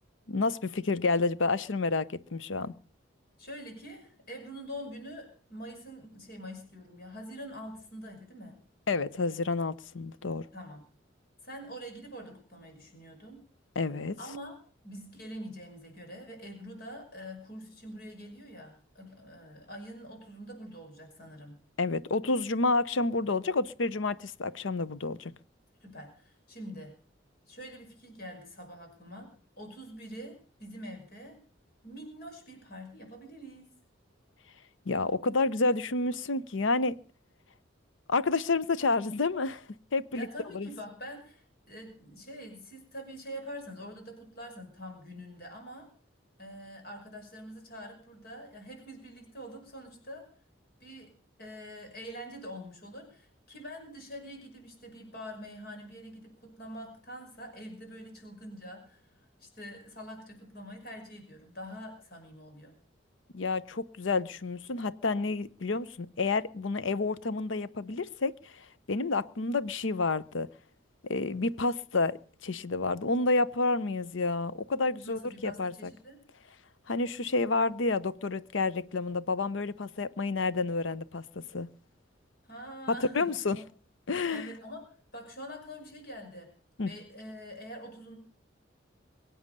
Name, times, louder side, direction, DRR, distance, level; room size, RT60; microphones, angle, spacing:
voice 1, 0.3-2.7 8.9-10.5 13.8-14.2 21.8-25.3 34.9-37.0 38.1-39.6 39.9-40.3 40.5-40.7 63.3-70.5 71.1-75.9 76.9-81.7 82.9-83.6 84.1-84.5 86.8-86.9, left 3 dB, 80° left, 0.7 m, -29 dB
voice 2, 3.4-8.6 10.5-10.9 11.4-13.4 14.2-14.6 14.8-21.6 25.8-27.0 27.5-29.3 29.6-31.4 31.8-33.7 40.1-45.9 46.4-50.3 50.8-51.1 51.4-62.7 75.0-76.2 82.4-83.7 84.3-84.9 85.1-86.5 86.8-88.2, equal, 50° left, 5.7 m, -45 dB
22.5 x 8.7 x 6.7 m
head